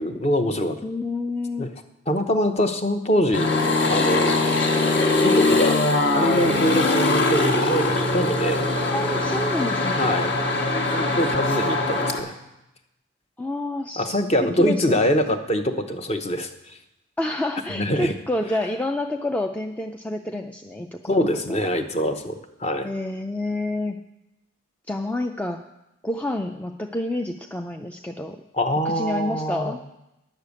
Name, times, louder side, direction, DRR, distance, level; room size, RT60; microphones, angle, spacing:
voice 1, 0.0-0.8 1.6-1.7 2.1-3.5 3.8-4.6 5.2-5.8 6.1-8.6 10.0-10.3 10.9-12.3 14.0-16.8 17.7-18.1 21.1-22.9 28.5-29.7, equal, 30° left, 7 dB, 0.7 m, -24 dB
voice 2, 0.8-1.7 8.9-10.1 13.4-14.2 14.6-15.1 17.2-21.6 22.8-24.0 24.9-25.6 26.0-28.4 28.8-29.8, left 1 dB, 5° left, 4 dB, 0.3 m, -29 dB
sound 1, 3.3-12.2, left 2 dB, 55° left, 1.4 m, -21 dB
10.5 x 6.6 x 8.3 m, 0.91 s
head